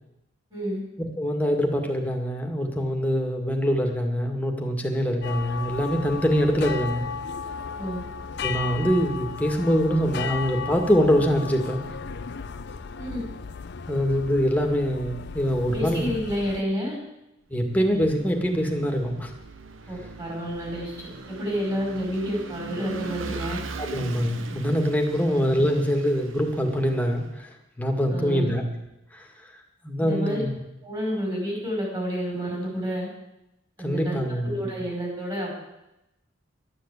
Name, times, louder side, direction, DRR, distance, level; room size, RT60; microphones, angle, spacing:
voice 1, 0.5-0.8 7.8-8.0 13.0-13.2 15.7-17.0 19.9-20.9 21.3-23.6 25.1-25.3 28.1-28.5 30.0-30.4 30.8-33.1 33.8-35.5, equal, 25° right, -2 dB, 5.3 m, -29 dB
voice 2, 1.2-7.1 8.4-11.9 13.9-16.1 17.5-19.3 23.9-27.5 27.8-28.6 29.1-29.3 29.8-30.6 33.8-34.5, equal, 10° left, 2 dB, 2.0 m, -24 dB
sound 1, 5.2-16.6, left 5 dB, 60° left, 0.6 m, -35 dB
Vehicle / Engine, 17.6-27.4, right 3 dB, 80° right, 0.9 m, -40 dB
12.0 x 9.8 x 8.3 m, 0.88 s
head